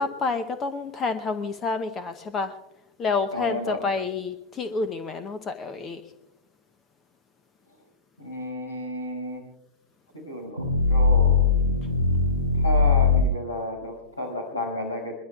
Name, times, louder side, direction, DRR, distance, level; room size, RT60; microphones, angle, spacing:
voice 1, 0.0-2.5 3.0-6.0, left 4 dB, 25° left, 12 dB, 0.8 m, -29 dB
voice 2, 3.3-3.8 8.2-9.4 10.1-11.5 12.5-15.1, left 1 dB, 80° left, 1 dB, 5.9 m, -32 dB
sound 1, 10.6-13.2, left 4 dB, 85° right, 1.1 m, -20 dB
22.0 x 21.5 x 2.4 m, 0.92 s
figure-of-eight pair, 90°, 0 cm